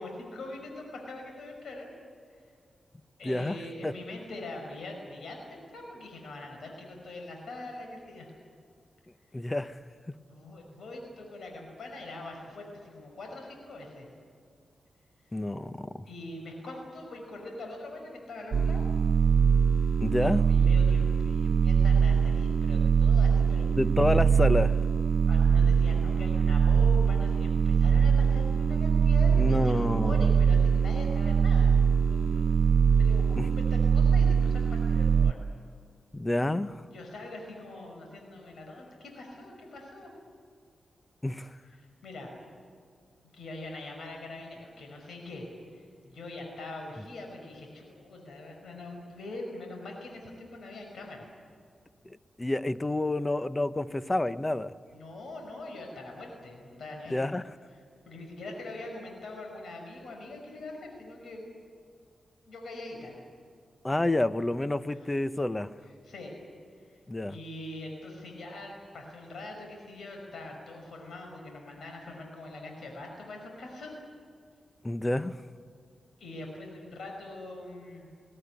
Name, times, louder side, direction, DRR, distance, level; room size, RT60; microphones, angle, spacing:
voice 1, 0.0-1.9 3.2-8.3 10.3-14.1 16.1-18.9 20.2-23.8 25.3-31.8 32.1-32.5 32.9-35.4 36.9-40.1 41.8-42.3 43.3-51.3 54.9-57.2 58.1-61.4 62.5-63.2 65.0-65.1 66.1-66.4 66.9-67.0 67.3-73.9 76.2-78.1, left 2 dB, 80° left, 5.5 m, -43 dB
voice 2, 3.2-4.0 9.3-9.8 10.1-10.2 15.3-16.1 20.0-20.5 23.7-24.8 29.4-30.3 33.3-33.5 36.1-36.8 41.2-41.6 52.0-54.7 57.1-57.5 63.8-65.8 67.1-67.4 74.8-75.4, left 1 dB, 20° left, 0.9 m, -29 dB
sound 1, 18.5-35.3, right 6 dB, 65° right, 0.5 m, -23 dB
20.5 x 20.0 x 9.9 m
cardioid pair, 70°, 0 cm